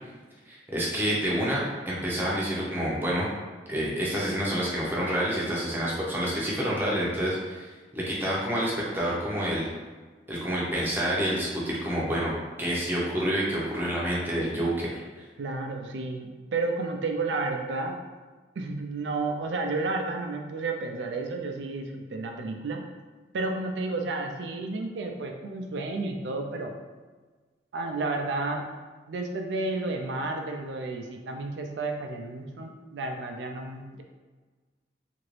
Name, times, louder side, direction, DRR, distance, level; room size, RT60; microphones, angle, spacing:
voice 1, 0.5-3.3 3.7-9.7 10.3-12.3 12.6-15.0, equal, 10° right, -6 dB, 0.7 m, -28 dB
voice 2, 15.4-18.0 18.6-22.8 23.3-26.8 27.7-28.6 29.1-34.0, right 3 dB, 85° right, 3 dB, 0.4 m, -31 dB
2.9 x 2.6 x 3.2 m, 1.4 s
head